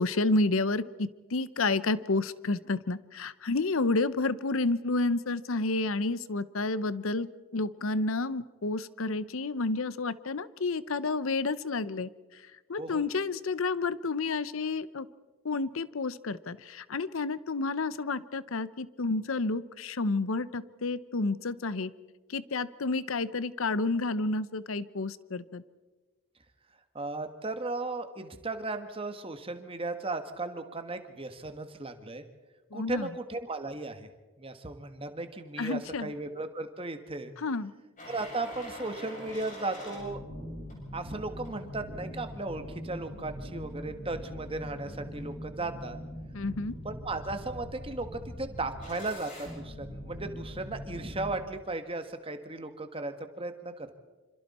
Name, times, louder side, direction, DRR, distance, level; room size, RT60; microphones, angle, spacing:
voice 1, 0.0-7.3 7.5-12.1 12.7-15.1 15.4-21.9 22.3-25.6 32.7-33.1 35.6-36.1 37.4-37.7 46.3-46.7, left 3 dB, 70° left, 16 dB, 0.7 m, -30 dB
voice 2, 26.9-32.2 32.7-34.1 34.4-37.3 38.1-40.2 40.9-46.0 46.8-53.9, right 2 dB, 25° right, 8 dB, 1.5 m, -36 dB
sound 1, 38.0-51.4, equal, 35° left, 7.4 m, -42 dB
26.5 x 26.5 x 4.3 m, 1.3 s
head